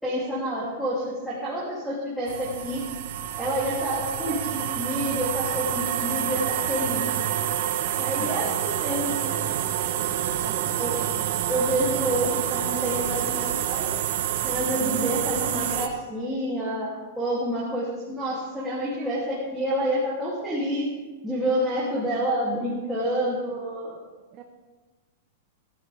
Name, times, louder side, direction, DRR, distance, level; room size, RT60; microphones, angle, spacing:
voice 1, 0.0-2.8 3.4-7.1 8.0-9.5 10.8-11.0 11.5-13.9 14.4-20.9 21.2-24.0, equal, ahead, -10 dB, 2.9 m, -28 dB
sound 1, 2.3-15.9, right 11 dB, 55° right, 1.1 m, -28 dB
voice 2, 10.4-11.3 12.2-12.3 14.8-15.2 21.9-22.1 24.3-24.4, right 10 dB, 25° right, 2 dB, 1.0 m, -41 dB
19.5 x 12.5 x 3.5 m, 1.3 s
supercardioid pair, 165°, 0 cm